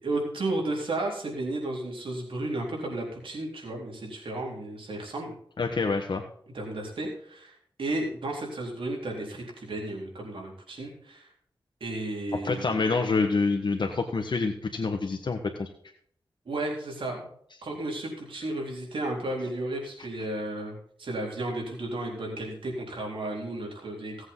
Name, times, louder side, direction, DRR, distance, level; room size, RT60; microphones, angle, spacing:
voice 1, 0.0-5.3 6.5-11.3 11.8-12.8 16.5-17.3 17.6-24.3, right 2 dB, 85° right, -1 dB, 4.0 m, -33 dB
voice 2, 5.6-6.2 12.4-15.7, left 4 dB, 65° left, 3 dB, 1.4 m, -27 dB
17.5 x 8.0 x 4.0 m, 0.62 s
wide cardioid pair, 85°, 9 cm